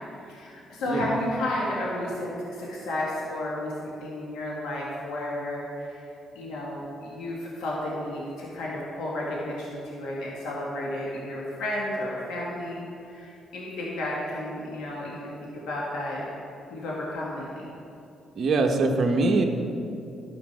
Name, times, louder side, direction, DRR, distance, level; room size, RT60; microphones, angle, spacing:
voice 1, 0.3-6.1 6.4-16.2 16.7-17.7, left 1 dB, 85° left, -5 dB, 1.7 m, -32 dB
voice 2, 18.4-19.4, right 3 dB, 55° right, 2 dB, 1.0 m, -23 dB
12.5 x 5.2 x 6.0 m, 2.7 s
cardioid pair, 90°, 0 cm